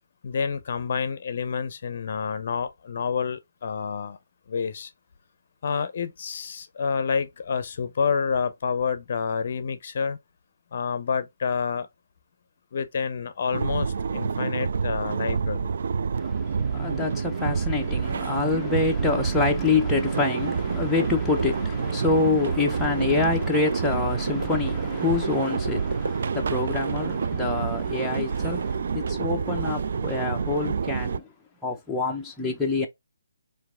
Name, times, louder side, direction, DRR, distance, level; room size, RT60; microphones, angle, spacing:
voice 1, 0.2-4.2 4.5-4.9 5.6-10.2 10.7-11.9 12.7-15.7, left 6 dB, 50° left, 0.6 m, -28 dB
sound 1, 13.5-31.2, right 5 dB, 60° right, 0.3 m, -28 dB
voice 2, 16.2-31.3 31.6-32.9, left 3 dB, 5° left, 0.7 m, -26 dB
sound 2, 19.7-26.2, right 2 dB, 75° right, 1.5 m, -38 dB
4.5 x 2.6 x 3.6 m
hypercardioid pair, 155°, 0 cm